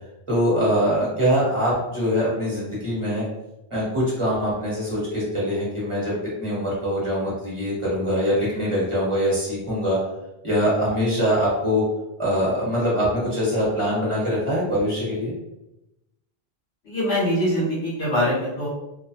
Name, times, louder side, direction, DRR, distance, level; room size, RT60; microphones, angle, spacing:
voice 1, 0.3-3.2 3.7-10.0 10.4-11.8 12.2-15.3, equal, 30° right, -7 dB, 1.1 m, -23 dB
voice 2, 16.8-18.7, equal, 85° left, -6 dB, 1.3 m, -23 dB
2.9 x 2.1 x 2.6 m, 0.93 s
omnidirectional pair, 1.0 m